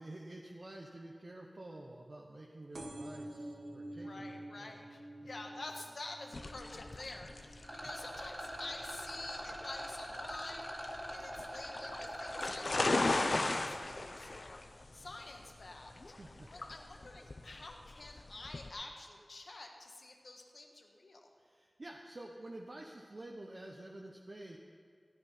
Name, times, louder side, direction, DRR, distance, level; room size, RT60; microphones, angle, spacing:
voice 1, 0.0-4.8 5.2-5.3 16.2-16.5 21.4-24.6, right 1 dB, 50° right, -1 dB, 1.0 m, -49 dB
sound 1, 2.7-10.0 10.5-10.9 11.8-11.9 12.1-12.2 12.4-12.5, right 1 dB, 75° right, 1.5 m, -50 dB
voice 2, 4.0-16.2 16.5-21.3, left 2 dB, 75° left, 2 dB, 1.5 m, -49 dB
sound 2, 6.3-18.7, left 2 dB, 55° left, 0.7 m, -38 dB
Rattle, 7.6-12.6, equal, 30° right, 2.0 m, -43 dB
16.0 x 10.5 x 5.6 m, 2.1 s
wide cardioid pair, 75°, 0 cm